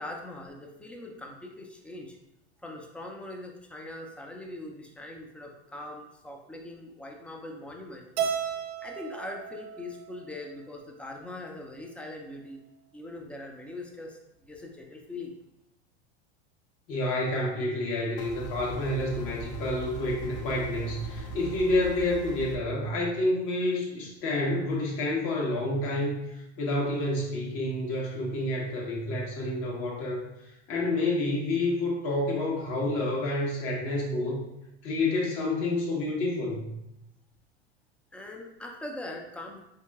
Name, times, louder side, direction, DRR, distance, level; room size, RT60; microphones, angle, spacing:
voice 1, 0.0-2.2 2.6-8.1 8.8-12.6 12.9-15.3 38.1-39.6, left 2 dB, 5° left, 1 dB, 0.4 m, -41 dB
Keyboard (musical), 8.2-10.5, right 8 dB, 65° right, 0.6 m, -34 dB
voice 2, 16.9-30.3 30.7-34.4 34.8-36.7, left 2 dB, 50° left, -3 dB, 1.3 m, -29 dB
sound 1, 18.2-22.6, right 2 dB, 70° left, 0.8 m, -40 dB
4.4 x 2.8 x 2.4 m, 0.86 s
hypercardioid pair, 95°, 33 cm